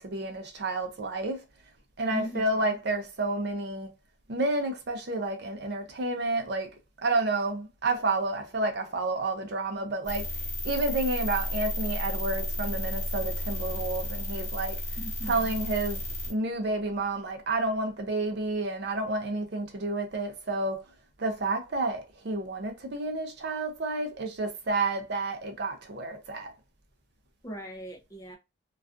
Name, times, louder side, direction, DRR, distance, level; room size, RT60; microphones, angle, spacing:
voice 1, 0.0-1.4 2.0-3.9 4.3-6.7 7.0-10.3 10.6-14.8 15.3-16.0 16.3-20.9 21.2-26.5, right 2 dB, 55° right, 0.5 m, -30 dB
voice 2, 2.1-2.4 15.0-15.5 27.4-28.4, equal, 15° left, 0.4 m, -38 dB
sound 1, 10.0-16.3, left 1 dB, 40° left, 0.9 m, -33 dB
2.3 x 2.3 x 2.4 m
head